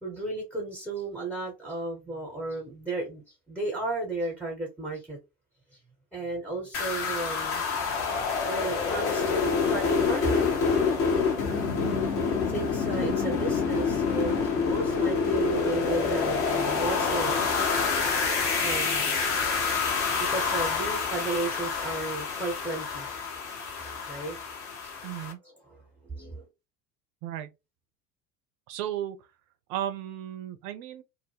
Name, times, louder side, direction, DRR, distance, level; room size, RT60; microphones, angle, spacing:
voice 1, 0.0-5.2 6.1-7.7 8.4-10.6 12.5-17.9 18.6-19.2 19.4-19.5 20.2-23.2 23.8-24.4 24.8-24.9 25.6-26.5, right 2 dB, 5° right, 0.8 m, -34 dB
sound 1, 6.7-25.3, left 5 dB, 30° left, 0.7 m, -27 dB
voice 2, 25.0-25.4 27.2-27.5 28.7-29.2 29.7-31.0, right 11 dB, 40° right, 0.5 m, -34 dB
2.2 x 2.0 x 3.2 m
figure-of-eight pair, 70°, 47 cm